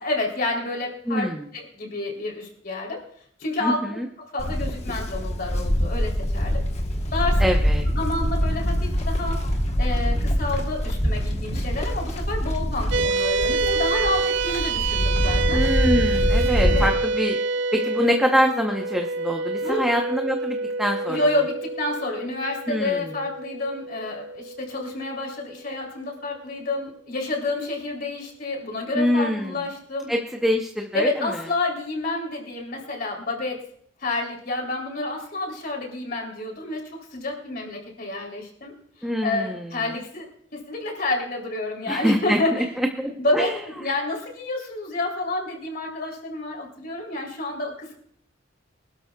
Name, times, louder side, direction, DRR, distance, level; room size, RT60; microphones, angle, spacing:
voice 1, 0.0-1.3 1.5-3.0 3.4-4.0 4.3-6.6 7.1-7.4 7.9-9.4 9.8-15.6 16.6-16.9 19.6-19.8 21.1-30.1 30.9-33.6 34.0-38.7 39.0-40.3 40.5-42.7 43.2-43.5 43.8-48.0, left 2 dB, 50° left, 0 dB, 3.3 m, -29 dB
voice 2, 1.1-1.5 3.6-4.1 7.4-7.9 15.5-17.4 17.7-21.2 22.7-23.0 28.9-29.5 30.1-31.1 39.0-39.7 41.9-43.5, equal, ahead, 2 dB, 0.8 m, -24 dB
Livestock farm animals working animals, 4.4-16.9, equal, 35° left, 1.2 m, -25 dB
sound 1, 6.9-13.1, equal, 20° right, 2.7 m, -30 dB
sound 2, 12.9-25.5, right 3 dB, 65° right, 0.5 m, -27 dB
25.0 x 12.5 x 2.3 m, 0.66 s
head